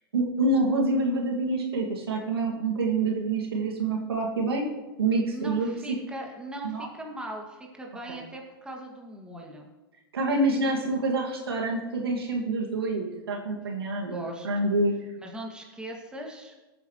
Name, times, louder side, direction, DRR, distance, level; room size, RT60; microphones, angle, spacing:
voice 1, 0.1-4.7 5.0-5.7 6.6-6.9 10.1-14.9, right 2 dB, 80° right, -1 dB, 2.1 m, -27 dB
voice 2, 5.3-9.7 14.0-14.7 15.2-16.5, right 1 dB, 5° right, 0 dB, 2.1 m, -40 dB
19.0 x 8.9 x 3.1 m, 1.1 s
hypercardioid pair, 100°, 12 cm